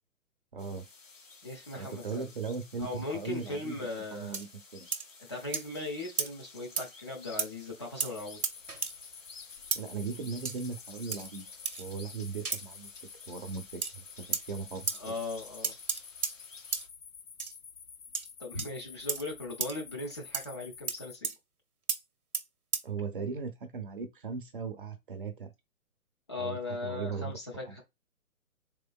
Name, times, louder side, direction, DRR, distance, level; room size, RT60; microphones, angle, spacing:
voice 1, 0.5-0.8 1.8-3.8 4.1-4.5 4.7-4.9 9.7-11.5 11.8-12.9 13.3-15.1 22.8-25.5 26.4-27.3 27.7-27.8, right 5 dB, 40° right, 0.7 m, -38 dB
sound 1, 0.6-16.9, left 4 dB, 60° left, 1.5 m, -54 dB
voice 2, 1.4-2.3 2.8-4.4 5.2-8.4 14.9-15.7 18.4-21.3 26.3-27.8, left 2 dB, 20° left, 0.6 m, -38 dB
sound 2, 4.3-4.5 4.9-5.1 5.5-5.7 6.2-6.3 6.8-6.9 7.4-7.5 8.0-8.1 8.4-8.9 9.7-9.8 10.5-10.6 11.1-11.3 11.7-11.8 12.5-12.6 13.8-13.9 14.3-14.4 14.9-15.0 15.6-16.4 16.7-16.9 17.4-17.5 18.1-18.3 18.6-18.7 19.1-19.2 19.6-19.7 20.3-20.5 20.9-21.0 21.2-21.4 21.9-22.0 22.3-22.4 22.7-22.8, right 5 dB, 85° right, 0.7 m, -32 dB
sound 3, 8.1-21.2, left 6 dB, 85° left, 0.6 m, -50 dB
3.7 x 3.3 x 2.2 m
figure-of-eight pair, 135°, 43 cm